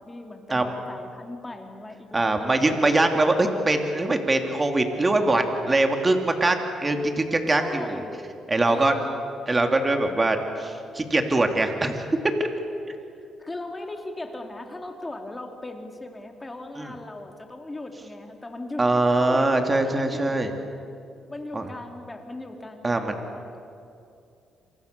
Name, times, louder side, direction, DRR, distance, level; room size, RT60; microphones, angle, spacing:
voice 1, 0.0-3.1 7.6-8.3 8.7-9.2 13.4-20.4 21.3-23.6, left 2 dB, 20° left, 4 dB, 3.2 m, -38 dB
voice 2, 2.1-8.0 8.5-8.9 9.5-12.0 12.4-12.5 16.8-16.9 18.8-20.5 21.5-21.7 22.8-23.4, right 2 dB, 25° right, 4 dB, 3.1 m, -23 dB
27.5 x 27.5 x 7.0 m, 2.5 s
cardioid pair, 90°, 0 cm